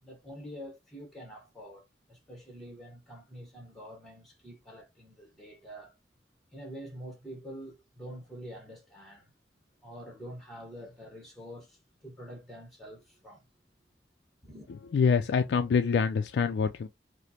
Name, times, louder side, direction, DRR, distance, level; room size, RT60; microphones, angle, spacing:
voice 1, 0.0-6.0 6.5-9.3 9.8-13.5 14.4-14.7, equal, ahead, 0.9 m, -46 dB
voice 2, 14.9-16.9, left 6 dB, 85° left, 0.3 m, -25 dB
4.9 x 2.0 x 2.7 m
head